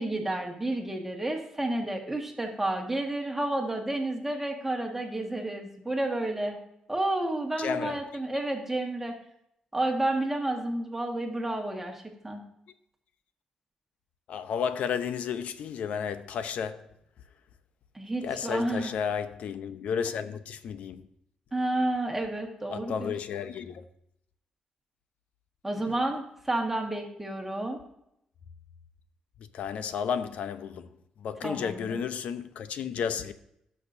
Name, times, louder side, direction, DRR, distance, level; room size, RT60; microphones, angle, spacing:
voice 1, 0.0-6.6 6.9-9.1 9.7-12.4 17.9-18.9 21.5-23.1 25.6-27.8 31.4-32.0, right 1 dB, 10° right, 1.6 m, -30 dB
voice 2, 7.6-8.0 14.3-16.9 18.2-21.1 22.7-23.8 29.4-30.9 31.2-33.3, left 7 dB, 75° left, 0.7 m, -32 dB
17.5 x 6.4 x 2.7 m
cardioid pair, 110°, 2 cm